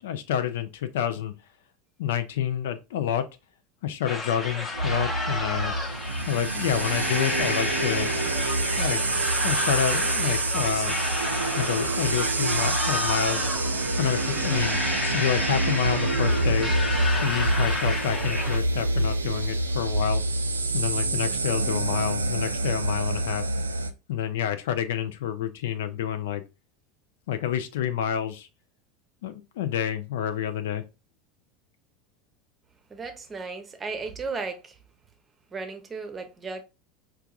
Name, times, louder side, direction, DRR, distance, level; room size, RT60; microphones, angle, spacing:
voice 1, 0.0-1.3 2.0-3.2 3.8-5.7 6.3-8.1 8.7-9.0 9.4-11.0 11.5-13.5 14.0-14.8 15.1-16.7 17.2-20.2 20.7-23.4 24.1-26.4 27.3-28.5 29.2-30.8, left 9 dB, 70° left, 0.4 m, -28 dB
sound 1, 4.1-18.6, left 2 dB, 25° left, 0.8 m, -31 dB
sound 2, 4.7-23.9, right 2 dB, 90° right, 0.3 m, -27 dB
voice 2, 32.9-34.8 35.5-36.6, right 4 dB, 25° right, 0.7 m, -35 dB
4.5 x 2.3 x 2.3 m
hypercardioid pair, 80°, 0 cm